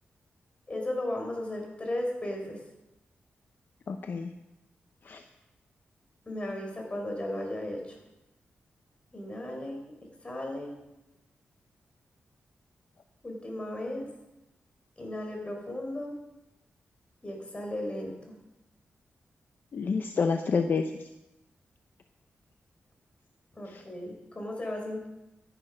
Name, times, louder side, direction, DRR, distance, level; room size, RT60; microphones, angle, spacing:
voice 1, 0.7-2.6 6.3-8.0 9.1-9.9 10.2-10.7 13.2-14.1 15.0-16.1 17.2-18.3 23.5-25.1, left 1 dB, 30° left, 1 dB, 4.6 m, -35 dB
voice 2, 3.9-4.3 5.0-5.2 19.7-21.1 23.7-23.8, left 5 dB, 55° left, 7 dB, 0.8 m, -29 dB
12.5 x 11.0 x 5.4 m, 0.95 s
cardioid pair, 85°, 4 cm